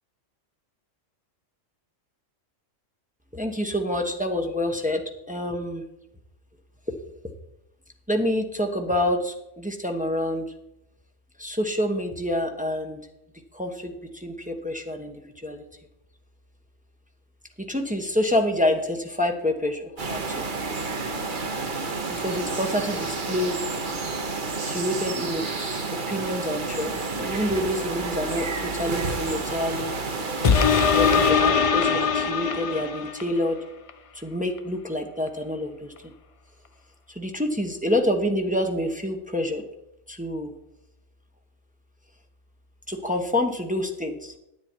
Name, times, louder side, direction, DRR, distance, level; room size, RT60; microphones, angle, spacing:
voice 1, 3.3-5.0 5.3-5.8 8.1-10.5 11.4-13.0 13.5-15.6 17.7-20.4 22.2-23.6 24.6-29.9 30.9-33.6 34.1-36.1 37.1-39.6 40.1-40.5 42.9-44.3, left 1 dB, 5° right, 3 dB, 1.0 m, -27 dB
sound 1, 20.0-31.3, right 3 dB, 40° right, 1.1 m, -30 dB
sound 2, 30.4-33.4 33.9-34.0, left 6 dB, 55° left, 0.3 m, -21 dB
10.5 x 8.7 x 4.6 m, 0.83 s
omnidirectional pair, 1.3 m